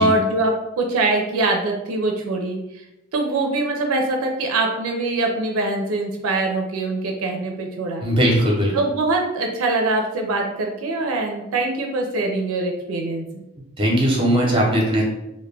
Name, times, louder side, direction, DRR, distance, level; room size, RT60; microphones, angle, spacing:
voice 1, 0.0-2.6 3.1-8.1 8.7-13.4, right 2 dB, 75° right, 2 dB, 0.4 m, -23 dB
voice 2, 8.0-8.7 13.8-15.0, equal, 25° right, -1 dB, 0.6 m, -18 dB
2.2 x 2.1 x 3.2 m, 0.89 s
head